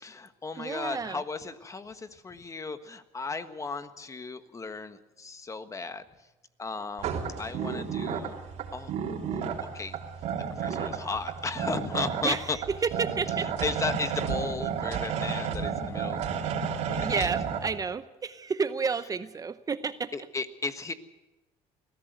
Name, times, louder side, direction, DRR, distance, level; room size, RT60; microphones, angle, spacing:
voice 1, 0.0-6.0 6.6-8.4 8.7-8.9 9.2-10.0 10.6-12.6 13.6-16.2 16.9-17.3 20.1-20.9, left 4 dB, 25° left, 10 dB, 1.4 m, -35 dB
voice 2, 0.6-1.2 12.2-13.5 15.1-15.4 17.0-20.1, right 5 dB, 30° right, 13 dB, 0.8 m, -31 dB
sound 1, 7.0-17.7, right 7 dB, 65° right, 3.3 m, -32 dB
21.5 x 15.0 x 8.1 m, 1.0 s
supercardioid pair, 95°, 12 cm